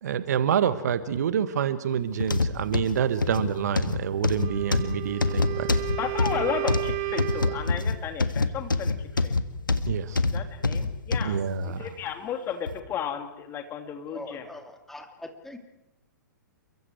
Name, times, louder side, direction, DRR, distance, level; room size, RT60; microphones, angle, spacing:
voice 1, 0.0-5.7 9.9-10.2 11.2-11.9, right 8 dB, 55° right, 12 dB, 1.6 m, -27 dB
sound 1, 2.2-11.3 11.9-12.0 12.7-12.8, left 3 dB, 80° left, 1.5 m, -26 dB
Wind instrument woodwind instrument, 4.3-7.9, right 16 dB, 30° right, 1.9 m, -33 dB
voice 2, 6.0-8.9 9.2-9.3 10.3-11.4 11.6-14.5, left 8 dB, 20° left, 5 dB, 2.7 m, -33 dB
voice 3, 14.1-15.6, left 1 dB, 5° left, 4 dB, 2.6 m, -42 dB
29.5 x 24.0 x 4.8 m, 0.94 s
figure-of-eight pair, 115°, 11 cm